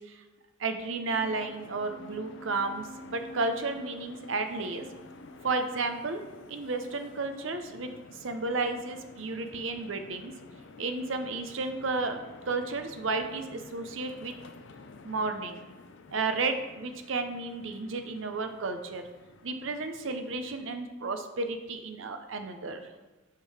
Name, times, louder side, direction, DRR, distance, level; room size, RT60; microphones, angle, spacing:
voice 1, 0.6-4.8 5.4-6.2 6.5-10.3 10.8-14.3 15.0-15.6 16.1-19.0 19.4-22.9, right 3 dB, 70° right, 7 dB, 0.7 m, -32 dB
sound 1, 1.1-20.7, left 2 dB, 65° left, 0.5 m, -50 dB
8.2 x 3.8 x 4.8 m, 1.2 s
head